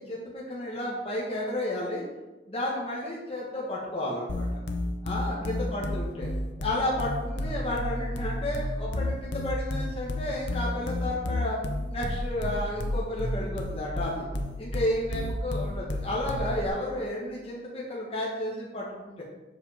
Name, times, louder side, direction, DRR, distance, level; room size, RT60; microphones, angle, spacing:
voice 1, 0.0-2.1 2.5-4.6 5.0-6.3 6.6-11.6 11.9-14.3 14.6-19.2, left 1 dB, 30° left, -5 dB, 1.3 m, -32 dB
sound 1, 4.3-16.7, left 1 dB, 75° left, 0.9 m, -31 dB
7.8 x 5.2 x 5.0 m, 1.1 s
head